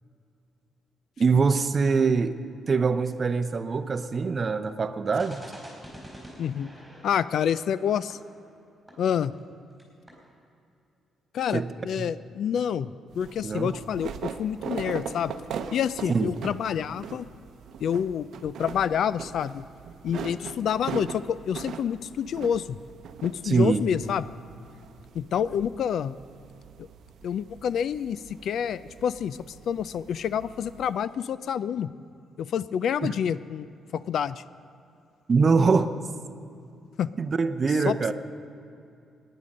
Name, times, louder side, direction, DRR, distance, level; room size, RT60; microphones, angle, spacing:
voice 1, 1.2-2.3 2.7-5.4 11.5-11.7 12.0-12.1 13.4-13.8 16.1-16.3 23.4-23.8 33.0-33.1 35.3-35.9 37.2-38.1, right 4 dB, 35° right, 9 dB, 0.6 m, -23 dB
sound 1, 5.2-9.5 9.8-9.9 10.1-10.3, equal, ahead, 4.2 m, -47 dB
voice 2, 6.4-6.7 7.0-8.2 9.0-9.3 11.3-12.9 13.2-15.3 15.7-17.3 17.8-19.7 20.0-22.7 23.2-24.2 25.1-26.2 26.8-26.9 27.2-29.4 29.7-31.9 32.4-34.4 37.0-37.1 37.9-38.1, left 8 dB, 65° left, 16 dB, 0.3 m, -28 dB
sound 2, 13.1-31.0, right 7 dB, 70° right, 0.7 m, -41 dB
18.5 x 10.0 x 5.3 m, 2.5 s
cardioid pair, 130°, 0 cm